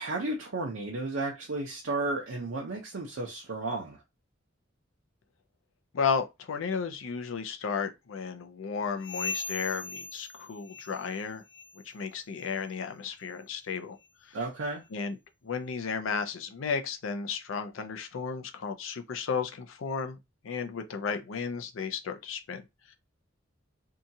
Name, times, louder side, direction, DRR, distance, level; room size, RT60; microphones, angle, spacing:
voice 1, 0.0-4.0 14.3-14.8, right 2 dB, 85° right, 0.7 m, -33 dB
voice 2, 5.9-11.4 11.9-14.0 14.3-14.4 14.9-15.1 15.4-20.2 20.4-22.6 22.9-23.0, left 5 dB, 75° left, 0.5 m, -33 dB
sound 1, 9.0-11.2 11.5-11.9 12.3-12.5 13.1-13.3 14.0-14.1 14.8-14.9, left 5 dB, 50° left, 1.0 m, -39 dB
2.8 x 2.3 x 2.7 m
head